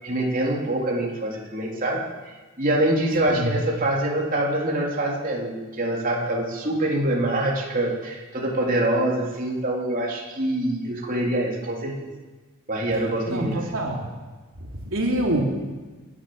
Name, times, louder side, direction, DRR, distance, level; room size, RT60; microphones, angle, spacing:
voice 1, 0.0-11.9 12.7-13.6, right 1 dB, 40° right, -2 dB, 3.6 m, -25 dB
voice 2, 13.3-14.1 14.6-15.4, right 1 dB, 70° right, 0 dB, 3.5 m, -26 dB
28.5 x 11.5 x 8.0 m, 1.3 s
head